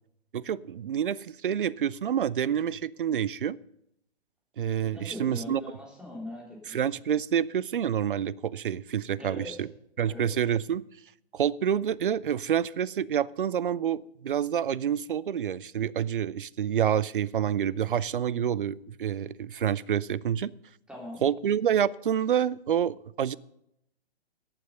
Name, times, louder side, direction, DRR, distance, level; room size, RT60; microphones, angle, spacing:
voice 1, 0.3-3.6 4.6-5.6 6.7-9.7 10.0-10.8 11.3-20.5 21.2-23.4, right 9 dB, 55° right, 24 dB, 0.5 m, -28 dB
voice 2, 4.9-6.8 9.2-9.7 10.1-10.3 20.9-21.2, left 1 dB, 5° right, -1 dB, 3.3 m, -41 dB
15.0 x 9.2 x 5.4 m, 0.77 s
figure-of-eight pair, 125°, 33 cm